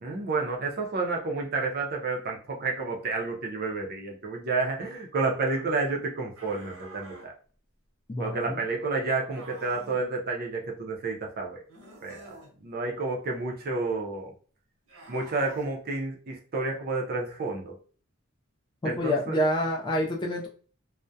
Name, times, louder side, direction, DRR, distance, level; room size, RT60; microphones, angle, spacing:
voice 1, 0.0-7.3 8.2-11.6 12.0-14.3 15.1-17.8 18.8-19.4, right 3 dB, 45° right, 1 dB, 0.5 m, -30 dB
sound 1, 6.3-7.3 9.3-10.0 11.7-12.5 14.9-15.7, right 1 dB, 75° right, 0.9 m, -48 dB
voice 2, 8.1-8.6 18.8-20.5, equal, 20° left, 0 dB, 0.3 m, -27 dB
2.3 x 2.0 x 2.6 m, 0.42 s
head